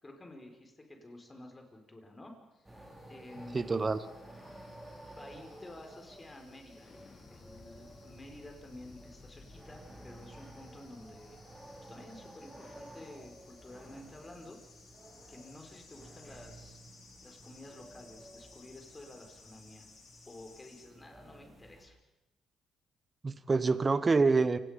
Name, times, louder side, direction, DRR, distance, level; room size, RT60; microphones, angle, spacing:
voice 1, 0.0-2.4 3.1-3.9 5.1-6.9 7.3-11.4 11.8-14.6 15.3-16.8 17.2-19.8 20.3-22.0, left 1 dB, 20° left, 3 dB, 5.0 m, -51 dB
sound 1, 1.1-20.8, left 4 dB, 60° left, 7.3 m, -61 dB
sound 2, 2.6-21.9, right 1 dB, 10° right, 5.7 m, -53 dB
voice 2, 3.5-4.0 23.2-24.6, right 4 dB, 30° right, 14 dB, 1.1 m, -26 dB
Explosion, 6.8-12.3, left 3 dB, 40° left, 4.3 m, -57 dB
28.5 x 18.0 x 5.3 m, 1.0 s
cardioid pair, 90°, 0 cm